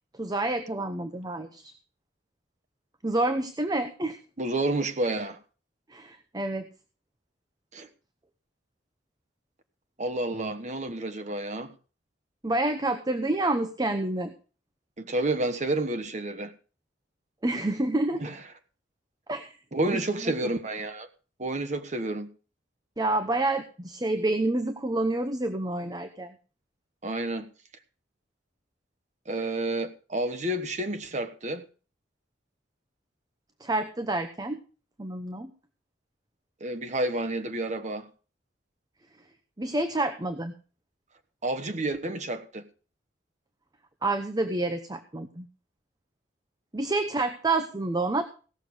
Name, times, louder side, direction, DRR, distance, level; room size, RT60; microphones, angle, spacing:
voice 1, 0.2-1.7 3.0-4.2 5.9-6.7 12.4-14.3 17.4-18.3 19.3-19.5 19.9-20.3 23.0-26.4 33.6-34.6 35.0-35.5 39.6-40.5 44.0-45.5 46.7-48.2, right 2 dB, 20° right, 0.8 m, -28 dB
voice 2, 4.4-5.4 7.7-7.9 10.0-11.7 15.0-16.5 18.2-18.4 19.7-21.1 21.4-22.3 27.0-27.5 29.3-31.6 36.6-38.1 41.4-42.6, right 2 dB, 40° right, 1.3 m, -30 dB
17.0 x 6.7 x 6.2 m
head